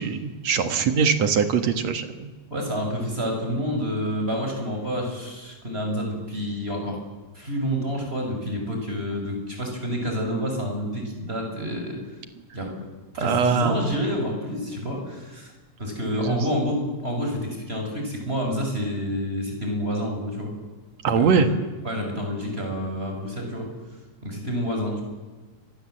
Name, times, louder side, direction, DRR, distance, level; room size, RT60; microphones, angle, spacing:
voice 1, 0.0-2.3 13.2-13.8 16.1-16.4 21.0-21.5, right 6 dB, 60° right, 8 dB, 2.8 m, -22 dB
voice 2, 2.5-7.0 7.3-12.0 12.5-12.8 13.1-15.5 15.8-20.5 21.2-21.6 21.8-23.7 24.2-25.0, equal, 15° right, 2 dB, 6.2 m, -28 dB
30.0 x 24.5 x 7.8 m, 1.3 s
omnidirectional pair, 3.6 m